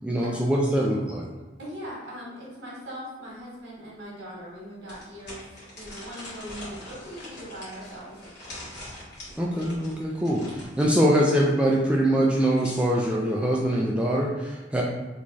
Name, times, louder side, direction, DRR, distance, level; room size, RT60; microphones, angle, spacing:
voice 1, 0.0-1.3 9.4-14.8, right 1 dB, 5° right, -3 dB, 0.3 m, -23 dB
voice 2, 1.3-8.2, equal, 70° right, -5 dB, 1.1 m, -40 dB
sound 1, 3.9-4.0 4.9-11.0 12.2-13.1, left 1 dB, 60° left, 1.5 m, -43 dB
3.0 x 2.3 x 3.9 m, 1.2 s
head